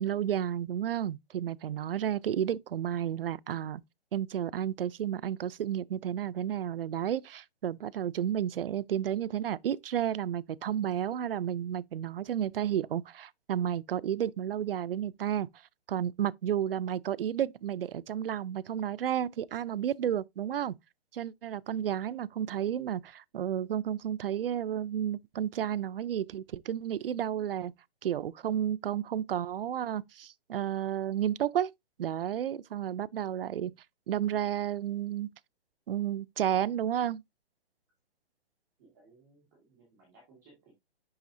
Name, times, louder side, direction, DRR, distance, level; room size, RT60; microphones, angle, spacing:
voice 1, 0.0-3.8 4.1-15.5 15.9-20.7 21.1-27.7 28.0-31.7 32.0-33.7 34.1-35.3 35.9-37.2, right 10 dB, 60° right, 0.5 m, -32 dB
voice 2, 38.8-40.7, right 3 dB, ahead, 0.4 m, -61 dB
10.5 x 3.5 x 2.6 m
hypercardioid pair, 175°, 32 cm